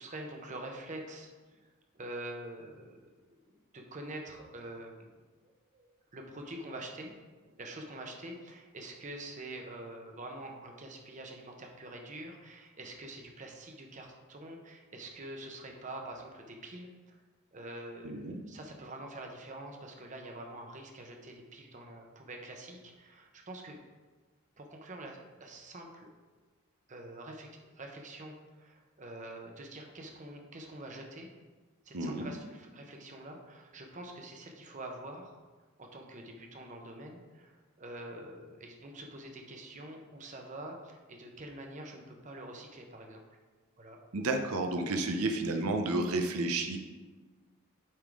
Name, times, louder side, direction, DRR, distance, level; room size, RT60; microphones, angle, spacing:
voice 1, 0.0-1.7 1.9-3.1 3.5-5.2 5.7-7.1 7.4-17.2 17.5-23.8 24.6-26.1 26.9-27.5 27.8-31.3 31.8-35.4 35.8-43.4 43.8-44.0, right 1 dB, 35° right, 2 dB, 0.8 m, -46 dB
voice 2, 18.0-18.4 31.9-32.3 44.1-46.8, right 2 dB, 90° right, 5 dB, 0.7 m, -31 dB
8.7 x 3.7 x 4.7 m, 1.3 s
head